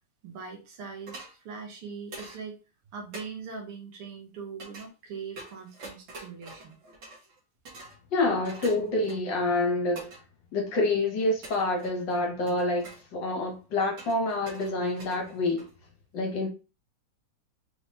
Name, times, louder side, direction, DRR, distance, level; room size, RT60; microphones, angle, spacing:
voice 1, 0.2-2.6 2.9-6.8, right 5 dB, 80° right, 2.1 m, -41 dB
sound 1, 1.1-1.3 2.1-2.4 3.1-3.3 4.6-4.9 5.4-7.4 7.7-8.0 8.4-9.4 10.0-10.2 11.4-12.1 12.5-13.0 14.0-15.8, right 2 dB, 65° right, 2.1 m, -45 dB
voice 2, 8.1-10.2 10.5-15.6 16.1-16.5, left 2 dB, 60° left, 1.5 m, -27 dB
4.7 x 3.5 x 2.8 m
omnidirectional pair, 2.4 m